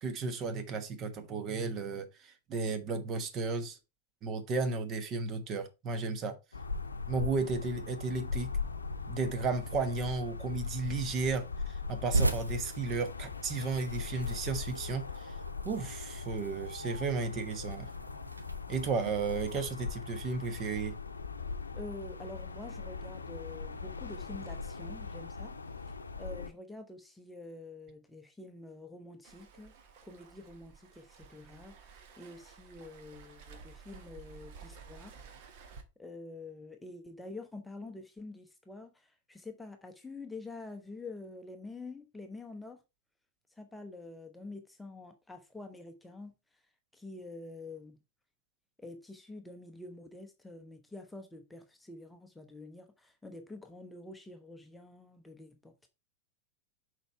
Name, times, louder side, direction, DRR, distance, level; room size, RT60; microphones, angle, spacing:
voice 1, 0.0-3.8 4.2-6.3 7.1-8.5 9.1-15.3 15.6-17.9 18.7-21.0, right 4 dB, 30° right, 1.3 m, -34 dB
sound 1, 6.5-26.5, left 4 dB, 75° left, 0.7 m, -40 dB
sound 2, 12.1-19.7, right 2 dB, 85° right, 0.8 m, -38 dB
voice 2, 21.7-25.5 25.9-29.7 30.1-35.2 36.0-42.8 43.6-46.3 46.9-48.0 48.8-55.9, left 2 dB, 5° left, 0.9 m, -47 dB
Waves surf, 29.2-35.8, right 5 dB, 50° right, 1.5 m, -53 dB
6.7 x 4.6 x 4.5 m
figure-of-eight pair, 90°, 0 cm